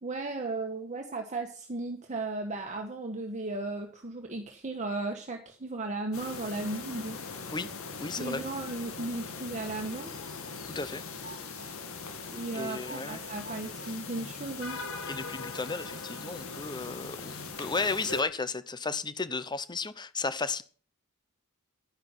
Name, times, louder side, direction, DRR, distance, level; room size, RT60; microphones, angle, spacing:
voice 1, 0.0-7.2 8.1-10.1 12.3-14.8, right 2 dB, 35° right, 1.6 m, -35 dB
sound 1, 6.1-18.2, left 4 dB, 65° left, 2.1 m, -40 dB
voice 2, 8.0-8.5 10.7-11.0 12.5-13.2 15.1-20.6, left 4 dB, 20° left, 0.8 m, -34 dB
11.5 x 10.5 x 5.9 m
head